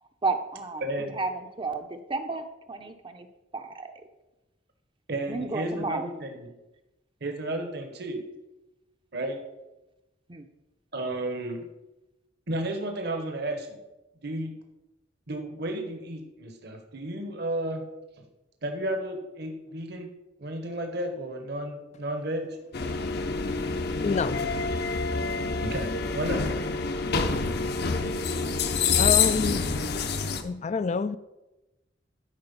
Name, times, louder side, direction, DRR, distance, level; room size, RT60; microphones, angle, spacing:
voice 1, 0.2-3.3 3.5-3.9 5.3-6.1 10.3-10.5, right 3 dB, 25° right, 7 dB, 0.7 m, -32 dB
voice 2, 0.8-1.2 5.1-6.5 7.2-8.2 9.1-9.4 10.9-11.7 12.5-13.8 14.2-14.5 15.3-17.8 18.6-20.1 20.4-22.6 25.6-26.5, right 1 dB, 60° right, 5 dB, 1.3 m, -33 dB
sound 1, 22.7-30.4, left 4 dB, 60° left, 0.8 m, -27 dB
voice 3, 24.0-24.4 29.0-29.7 30.4-31.2, left 5 dB, 35° left, 14 dB, 0.4 m, -27 dB
12.0 x 4.9 x 5.5 m, 1.0 s
head